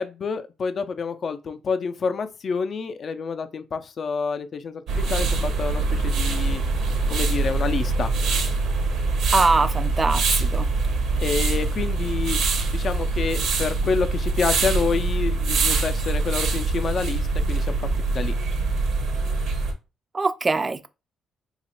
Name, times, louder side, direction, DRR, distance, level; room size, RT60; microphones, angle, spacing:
voice 1, 0.0-6.6 7.1-8.1 11.2-12.4 12.7-18.3, left 5 dB, 50° left, 0.4 m, -28 dB
sound 1, 4.9-19.7, right 3 dB, 80° right, 0.8 m, -24 dB
voice 2, 9.3-10.7 20.1-20.9, right 3 dB, 25° right, 0.4 m, -22 dB
3.0 x 2.4 x 4.3 m
cardioid pair, 90°, 0 cm